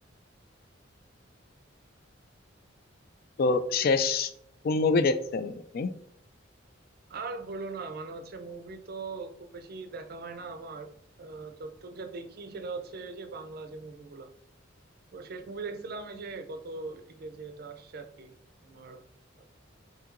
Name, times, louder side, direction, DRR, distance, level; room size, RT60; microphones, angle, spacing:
voice 1, 3.4-4.3 4.6-5.9, left 4 dB, 50° left, 11 dB, 0.3 m, -25 dB
voice 2, 7.1-10.9 11.2-14.3 15.1-18.3 18.6-19.0, right 3 dB, 50° right, 7 dB, 0.4 m, -40 dB
5.7 x 2.7 x 2.5 m, 0.69 s
head